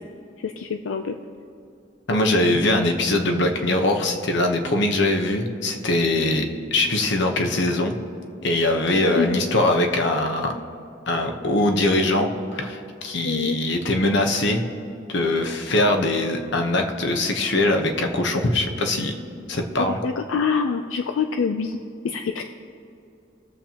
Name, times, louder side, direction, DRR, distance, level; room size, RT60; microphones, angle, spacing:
voice 1, 0.4-1.2 9.2-9.5 13.2-13.6 19.8-21.8 22.0-22.4, left 5 dB, 85° left, 6 dB, 0.5 m, -25 dB
voice 2, 2.1-6.5 6.7-8.0 8.4-10.5 11.1-14.6 15.1-19.2 19.5-20.0, left 2 dB, 65° left, 4 dB, 1.0 m, -22 dB
20.5 x 7.3 x 2.9 m, 2.6 s
head